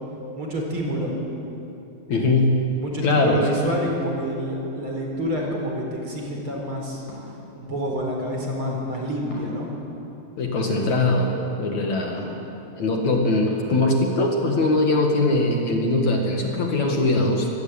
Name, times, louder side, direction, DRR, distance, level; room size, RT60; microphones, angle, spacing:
voice 1, 0.4-1.1 2.8-7.0 7.5-9.7, equal, 35° right, 0 dB, 5.0 m, -28 dB
voice 2, 2.1-2.6 3.0-3.4 10.4-12.3 12.8-17.5, left 2 dB, 55° left, 1 dB, 3.2 m, -21 dB
sound 1, 5.3-5.5 7.1-7.4 9.3-9.5 10.7-11.0 12.2-12.5 13.5-13.6, equal, 80° left, 7.4 m, -39 dB
25.0 x 20.5 x 8.8 m, 2.9 s
omnidirectional pair, 4.1 m